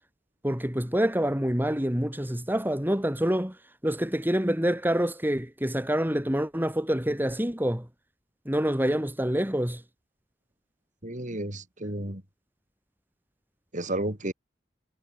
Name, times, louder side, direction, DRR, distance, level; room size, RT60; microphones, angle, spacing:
voice 1, 0.4-3.5 3.8-7.8 8.4-9.8, equal, 10° right, 3.3 m, -26 dB
voice 2, 11.0-12.2 13.7-14.3, right 1 dB, 45° right, 4.8 m, -32 dB
head